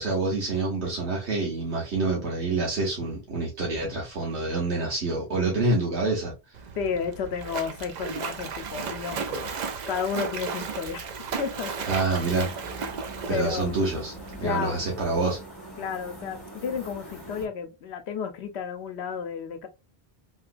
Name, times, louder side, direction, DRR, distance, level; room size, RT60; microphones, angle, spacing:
voice 1, 0.0-6.3 11.9-12.7 13.3-15.4, right 3 dB, 90° right, 1.4 m, -27 dB
Splash splatter, 6.5-14.4, right 5 dB, 55° right, 0.5 m, -35 dB
voice 2, 6.8-9.5 9.9-11.1 11.4-12.0 13.3-14.0 14.4-14.8 15.8-19.7, left 6 dB, 85° left, 0.9 m, -32 dB
sound 1, 12.1-17.5, right 1 dB, 20° left, 1.4 m, -43 dB
3.1 x 2.9 x 2.4 m
omnidirectional pair, 1.1 m